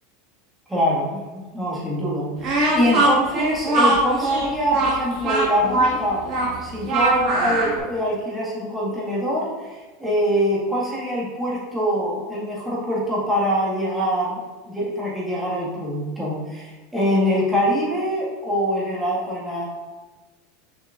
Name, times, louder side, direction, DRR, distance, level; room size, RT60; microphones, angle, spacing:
voice 1, 0.7-6.2 6.6-19.7, equal, 5° right, -6 dB, 1.9 m, -24 dB
Speech, 2.4-7.8, right 2 dB, 40° right, 2.0 m, -21 dB
6.4 x 6.2 x 2.6 m, 1.3 s
supercardioid pair, 140°, 0 cm